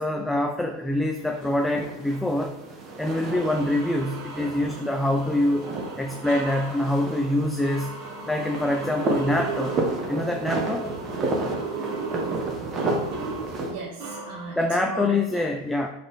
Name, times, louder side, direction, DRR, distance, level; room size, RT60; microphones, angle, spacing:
voice 1, 0.0-2.6 3.0-5.7 6.0-8.0 8.3-9.8 10.1-10.9 14.5-15.9, left 1 dB, 5° left, 4 dB, 0.3 m, -25 dB
sound 1, 1.1-13.7, right 2 dB, 25° right, 0.8 m, -32 dB
sound 2, 2.1-2.2 2.8-14.8, right 4 dB, 50° right, 1.6 m, -36 dB
voice 2, 13.4-15.4, right 3 dB, 65° right, -1 dB, 0.8 m, -37 dB
4.1 x 3.2 x 3.8 m, 0.90 s
supercardioid pair, 135°, 0 cm